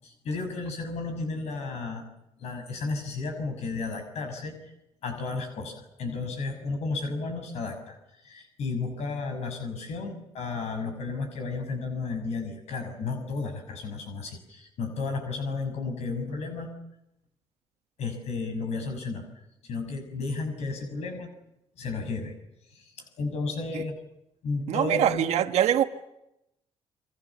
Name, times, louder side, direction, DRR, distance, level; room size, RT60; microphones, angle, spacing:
voice 1, 0.0-2.0 2.4-4.7 5.0-16.7 18.0-19.2 19.6-21.3 21.8-22.3 22.7-23.9 24.4-25.2, left 3 dB, 75° left, 6.2 m, -33 dB
voice 2, 24.7-25.8, right 10 dB, 85° right, 1.4 m, -23 dB
29.0 x 23.5 x 7.2 m
cardioid pair, 100°, 11 cm